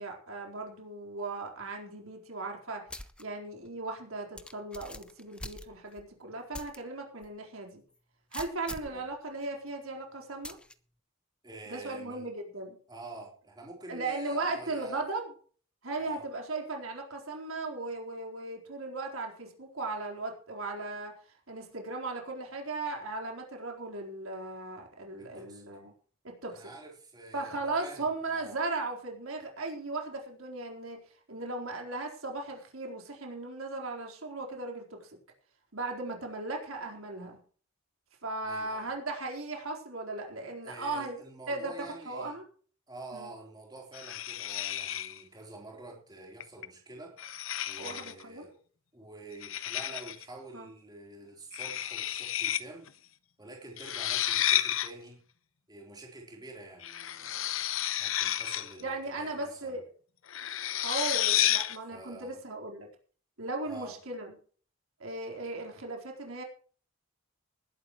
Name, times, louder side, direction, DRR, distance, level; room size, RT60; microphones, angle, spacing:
voice 1, 0.0-2.9 3.2-7.8 8.3-10.6 11.7-12.8 13.9-15.3 15.8-21.1 21.5-25.9 26.2-26.7 27.3-31.0 31.3-35.0 35.7-37.4 38.2-41.2 41.5-42.5 43.1-43.3 47.8-48.4 50.5-50.7 58.8-59.8 60.8-62.9 63.4-64.3 65.0-66.4, right 2 dB, 70° right, 1 dB, 4.2 m, -37 dB
sound 1, 2.9-3.2 3.7-3.8 4.4-6.0 6.5-6.8 7.2-7.3 8.3-9.0 10.4-10.7, left 1 dB, 5° left, 0.7 m, -43 dB
voice 2, 11.4-12.3 12.9-15.0 16.0-16.3 25.2-25.6 26.5-28.6 38.4-38.9 40.6-42.4 42.9-47.2 47.7-48.6 48.9-52.9 53.4-55.2 55.7-59.8 61.9-62.4 63.6-64.0, right 2 dB, 20° right, -1 dB, 3.9 m, -47 dB
sound 2, 43.9-45.2 46.4-46.7 47.2-48.2 49.4-50.2 51.5-52.6 52.9-53.0 53.8-54.9 56.8-58.8 60.3-61.8, left 12 dB, 65° left, 0.9 m, -31 dB
20.0 x 11.5 x 3.2 m, 0.43 s
head